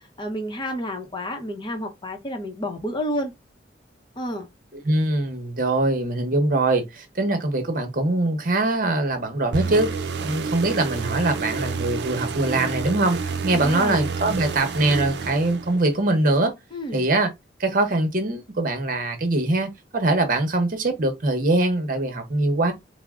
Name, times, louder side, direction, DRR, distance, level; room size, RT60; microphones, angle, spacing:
voice 1, 0.0-3.3 4.2-4.5 13.5-14.0 16.7-17.1, equal, 25° left, 0.8 m, -30 dB
voice 2, 4.8-9.9 10.2-16.5 16.9-17.3 17.6-22.7, right 2 dB, 45° right, 0.9 m, -22 dB
sound 1, 9.5-16.0, right 4 dB, 65° right, 0.5 m, -29 dB
3.6 x 2.1 x 3.6 m
head